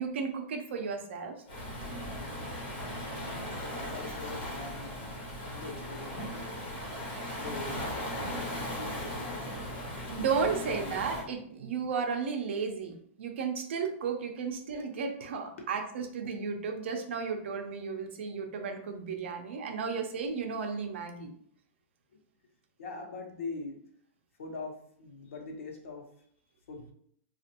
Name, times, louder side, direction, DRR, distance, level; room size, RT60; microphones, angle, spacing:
voice 1, 0.0-1.3 10.1-21.3, right 5 dB, 65° right, 4 dB, 0.6 m, -34 dB
Waves surf, 1.5-11.2, equal, 50° left, 1.3 m, -38 dB
voice 2, 3.7-5.0 5.4-6.5 6.8-7.8 8.3-9.6 10.6-11.0 15.6-15.7 19.9-20.0 22.8-23.8 24.4-26.0 26.7-26.8, left 3 dB, 90° left, 2 dB, 0.9 m, -42 dB
3.3 x 2.4 x 2.8 m, 0.64 s
supercardioid pair, 175°, 7 cm